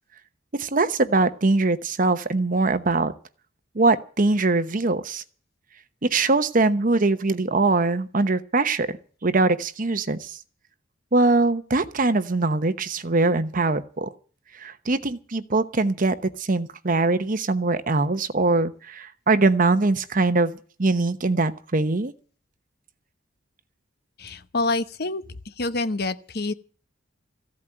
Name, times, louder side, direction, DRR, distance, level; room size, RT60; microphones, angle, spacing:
voice 1, 0.6-3.1 3.7-5.2 6.0-10.4 11.1-14.1 14.6-22.1, right 3 dB, 45° right, 1.0 m, -22 dB
voice 2, 24.2-25.2 25.6-26.5, left 3 dB, 55° left, 1.0 m, -26 dB
15.5 x 8.4 x 8.9 m
head